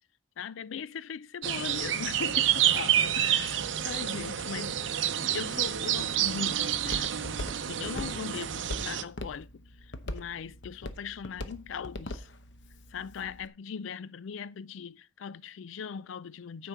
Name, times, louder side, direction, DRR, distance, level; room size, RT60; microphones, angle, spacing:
voice 1, 0.4-5.1 5.3-7.1 7.7-9.6 10.1-12.3 12.9-16.7, left 6 dB, 80° left, 0.4 m, -39 dB
sound 1, 1.4-9.0, right 10 dB, 70° right, 0.6 m, -29 dB
Walk footsteps, 5.5-13.5, left 1 dB, 65° left, 0.8 m, -42 dB
9.2 x 4.7 x 6.8 m
head